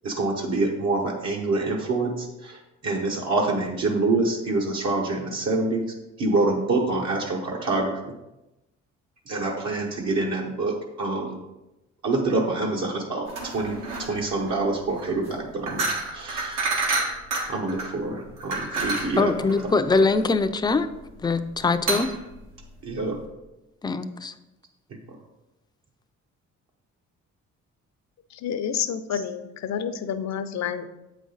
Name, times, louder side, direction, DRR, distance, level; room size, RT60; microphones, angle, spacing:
voice 1, 0.0-5.8 6.2-8.1 9.3-11.4 12.0-15.8 16.1-16.7 17.5-19.3 19.6-19.7 22.8-23.2, right 2 dB, 60° right, -2 dB, 1.0 m, -26 dB
sound 1, 13.3-23.2, right 3 dB, 85° right, 1.6 m, -30 dB
voice 2, 19.2-20.9 21.2-22.1 23.8-24.3, left 3 dB, 15° left, 9 dB, 0.4 m, -22 dB
voice 3, 28.4-30.9, left 8 dB, 65° left, 10 dB, 0.6 m, -29 dB
7.6 x 5.2 x 3.9 m, 0.97 s
cardioid pair, 90°, 30 cm